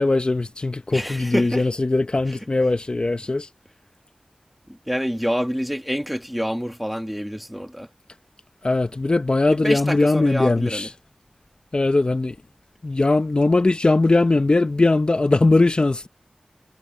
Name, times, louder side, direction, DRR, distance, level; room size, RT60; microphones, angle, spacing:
voice 1, 0.0-3.5 8.6-10.9 11.7-12.4 12.8-16.1, left 2 dB, 45° left, 1.0 m, -20 dB
voice 2, 0.9-1.7 2.3-2.4 4.7-7.9 9.5-10.9, equal, ahead, 2.5 m, -27 dB
wide cardioid pair, 45°, 2 cm